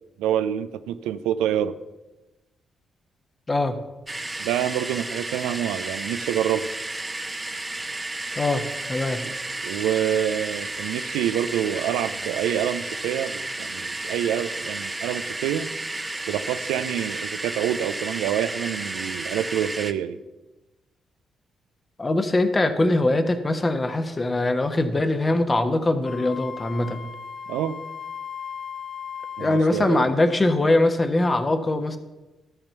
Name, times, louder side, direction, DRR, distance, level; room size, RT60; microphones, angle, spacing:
voice 1, 0.2-1.8 4.4-6.6 9.2-9.3 9.6-15.7 16.3-20.2 27.5-27.8 29.4-30.1, right 10 dB, 75° right, 12 dB, 0.4 m, -27 dB
sound 1, 4.1-19.9, right 2 dB, 20° right, 0.8 m, -32 dB
voice 2, 8.9-9.2 22.0-27.0 29.4-32.0, left 2 dB, 30° left, 7 dB, 1.2 m, -22 dB
Wind instrument woodwind instrument, 26.0-29.8, left 7 dB, 50° left, 0.8 m, -37 dB
12.5 x 4.4 x 6.7 m, 1.1 s
hypercardioid pair, 40°, 0 cm